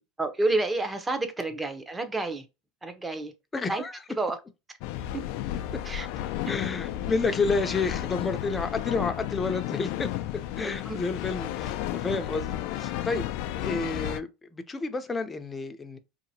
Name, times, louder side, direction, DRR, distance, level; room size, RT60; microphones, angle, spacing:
voice 1, 0.2-2.4 2.8-3.3 3.7-3.8 4.1-4.4 5.1-5.2 5.8-6.1 10.6-11.0, right 2 dB, 15° right, 0.9 m, -29 dB
voice 2, 3.5-4.0 6.4-10.1 10.6-13.2 13.6-16.0, left 4 dB, 20° left, 0.7 m, -30 dB
sound 1, 4.8-14.2, left 13 dB, 70° left, 0.4 m, -33 dB
4.5 x 2.9 x 2.8 m
supercardioid pair, 105°, 0 cm